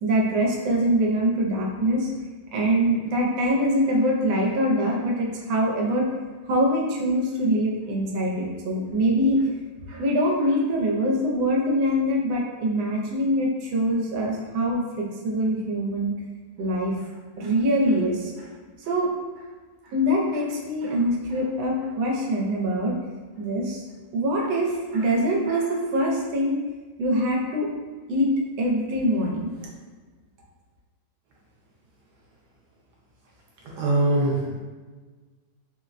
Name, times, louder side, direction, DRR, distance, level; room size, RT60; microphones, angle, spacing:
voice 1, 0.0-2.1 2.5-6.1 6.4-9.5 9.9-16.1 16.6-17.1 17.4-18.5 18.8-19.1 19.9-22.9 23.4-23.8 24.1-26.6 27.0-27.7 28.1-29.7, equal, 80° right, -2 dB, 1.4 m, -24 dB
voice 2, 33.6-34.6, right 2 dB, 65° right, -4 dB, 1.2 m, -22 dB
3.9 x 2.1 x 2.4 m, 1.4 s
omnidirectional pair, 2.1 m